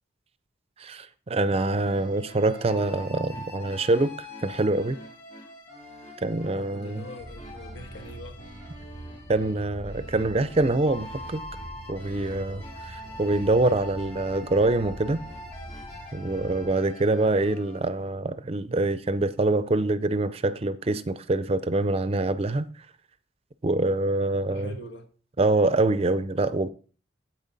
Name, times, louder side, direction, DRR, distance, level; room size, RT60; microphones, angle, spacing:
voice 1, 0.8-5.0 6.2-7.0 9.3-11.4 11.9-15.2 16.1-22.7 23.6-24.7 25.4-26.7, right 2 dB, 30° right, 0.5 m, -25 dB
sound 1, 1.8-17.8, left 1 dB, 35° left, 2.9 m, -44 dB
voice 2, 6.5-8.4 24.5-25.1, left 1 dB, 75° left, 1.5 m, -43 dB
sound 2, 7.2-16.7, right 1 dB, 55° left, 1.5 m, -43 dB
9.0 x 8.0 x 4.0 m
head